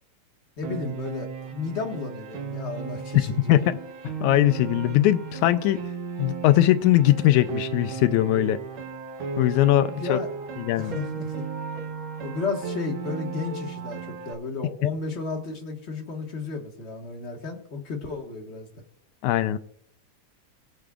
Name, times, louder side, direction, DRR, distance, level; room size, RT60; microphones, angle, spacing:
voice 1, 0.6-3.6 9.8-10.3 10.7-11.4 12.2-18.7, left 4 dB, 35° left, 1 dB, 1.2 m, -33 dB
Piano, 0.6-14.3, right 6 dB, 60° right, 1.4 m, -35 dB
voice 2, 4.2-5.8 6.2-8.6 9.4-10.2 10.6-11.0 19.2-19.6, left 14 dB, 80° left, 12 dB, 2.0 m, -20 dB
21.5 x 7.8 x 2.4 m, 0.64 s
omnidirectional pair, 3.5 m